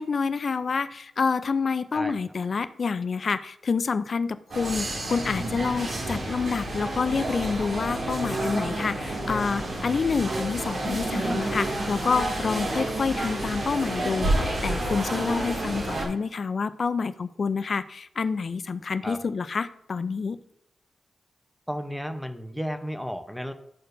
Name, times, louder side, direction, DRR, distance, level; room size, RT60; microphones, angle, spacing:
voice 1, 0.0-20.4, left 5 dB, 50° left, 13 dB, 0.4 m, -28 dB
sound 1, 4.5-16.1, right 1 dB, 60° right, 2.1 m, -29 dB
voice 2, 21.7-23.5, equal, ahead, 7 dB, 0.7 m, -33 dB
12.5 x 4.4 x 2.6 m, 0.73 s
cardioid pair, 100°, 0 cm